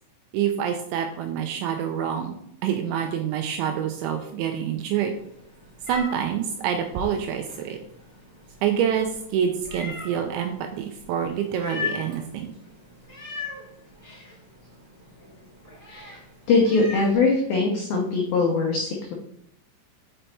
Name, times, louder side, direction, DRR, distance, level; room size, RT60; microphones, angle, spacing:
voice 1, 0.3-2.4 2.6-5.1 5.9-7.8 8.6-12.5, right 8 dB, 85° right, 5 dB, 2.7 m, -27 dB
Meow, 5.1-17.2, left 4 dB, 10° left, 1.8 m, -40 dB
voice 2, 15.9-16.2 16.5-19.1, left 3 dB, 85° left, 0 dB, 2.0 m, -22 dB
6.6 x 5.3 x 4.4 m, 0.73 s
omnidirectional pair, 5.8 m